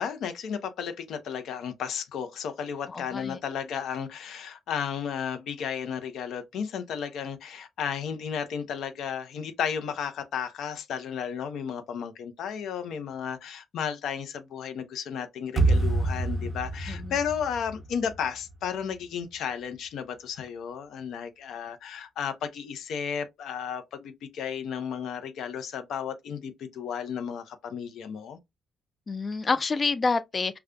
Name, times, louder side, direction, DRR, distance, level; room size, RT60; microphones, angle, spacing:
voice 1, 0.0-28.4, left 7 dB, 75° left, 0.6 m, -33 dB
voice 2, 2.9-3.4 16.9-17.1 29.1-30.6, left 4 dB, 35° left, 0.3 m, -28 dB
sound 1, 15.6-18.7, right 2 dB, 20° right, 0.9 m, -27 dB
5.0 x 2.3 x 2.2 m
cardioid pair, 90°, 0 cm